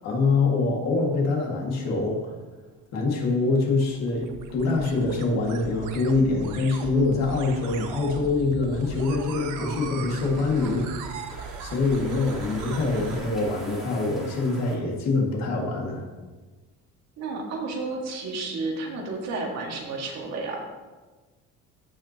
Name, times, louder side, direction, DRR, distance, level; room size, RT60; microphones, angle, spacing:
voice 1, 0.0-2.3 2.9-11.0 11.3-16.0, left 3 dB, 60° left, -1 dB, 2.1 m, -25 dB
sound 1, 3.4-13.3, right 5 dB, 85° right, 1.0 m, -38 dB
sound 2, 8.8-14.8, equal, ahead, 2.0 m, -45 dB
voice 2, 17.2-20.7, right 3 dB, 60° right, 0 dB, 2.0 m, -31 dB
16.0 x 5.8 x 2.9 m, 1.3 s
cardioid pair, 155°, 30 cm